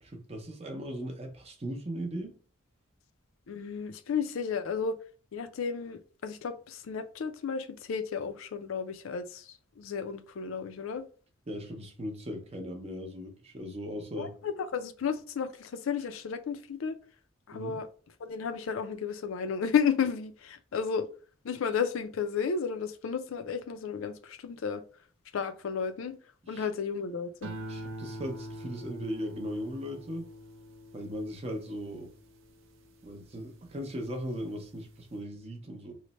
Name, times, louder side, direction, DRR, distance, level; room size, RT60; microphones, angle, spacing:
voice 1, 0.0-2.3 11.5-14.3 17.5-17.8 26.4-26.7 27.7-30.3 30.9-32.1 33.0-35.9, equal, 30° right, 0.6 m, -38 dB
voice 2, 3.5-5.0 5.3-11.0 14.2-17.0 17.5-17.9 18.2-21.1 21.4-24.8 25.3-26.1 26.5-27.5, left 6 dB, 75° left, 0.4 m, -33 dB
sound 1, 27.4-33.9 34.4-34.9, right 1 dB, 70° right, 0.5 m, -44 dB
3.1 x 2.1 x 3.9 m
head